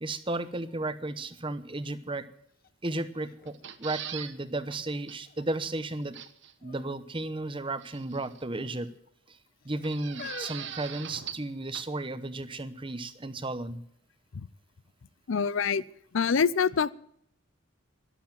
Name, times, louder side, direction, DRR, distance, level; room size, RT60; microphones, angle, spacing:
voice 1, 0.0-2.3 2.8-6.2 6.6-8.9 9.3-9.4 9.6-13.8, right 2 dB, 25° right, 13 dB, 0.9 m, -34 dB
sound 1, 2.6-2.7 3.1-4.7 5.3-5.8 6.6-7.0 7.2-7.4 8.3-8.9 9.6-11.7 12.4-12.5, left 4 dB, 45° left, 1.1 m, -47 dB
sound 2, 3.5-4.3 4.7-4.8 5.1-5.2 6.1-6.5 7.8-8.4 9.8-11.5 11.7-11.8, right 9 dB, 55° right, 1.1 m, -41 dB
voice 2, 15.3-15.8 16.1-16.9, left 6 dB, 65° left, 19 dB, 0.5 m, -25 dB
13.0 x 11.5 x 7.5 m, 0.68 s
head